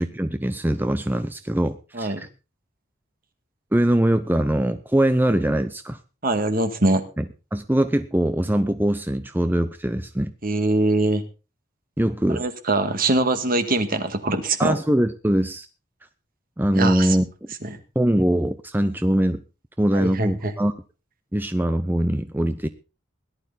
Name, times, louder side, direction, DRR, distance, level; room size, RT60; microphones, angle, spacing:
voice 1, 0.0-2.3 3.7-6.0 7.2-10.3 12.0-12.4 14.6-15.7 16.6-17.5 18.0-19.4 19.8-20.7 21.3-22.7, right 1 dB, 10° right, 10 dB, 0.7 m, -22 dB
voice 2, 6.2-7.0 10.4-11.2 12.3-14.8 16.7-17.2 17.6-17.8 19.9-20.5, right 2 dB, 45° right, 9 dB, 1.9 m, -22 dB
18.0 x 11.5 x 4.1 m, 0.32 s
head